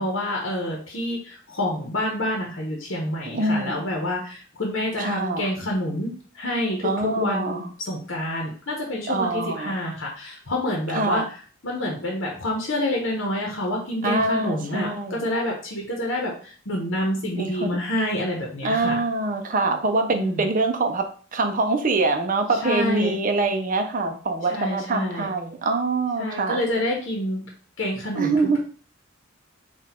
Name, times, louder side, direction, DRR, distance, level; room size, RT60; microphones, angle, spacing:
voice 1, 0.0-19.0 20.1-20.5 22.5-23.1 24.4-25.3 26.2-27.4 27.8-28.6, left 1 dB, 65° left, -1 dB, 0.9 m, -28 dB
voice 2, 3.3-3.7 5.0-5.5 6.8-7.7 9.1-9.8 10.9-11.3 14.0-15.2 17.3-17.8 18.6-26.6 28.1-28.6, right 3 dB, 40° right, 6 dB, 0.6 m, -24 dB
4.0 x 2.4 x 4.2 m, 0.42 s
head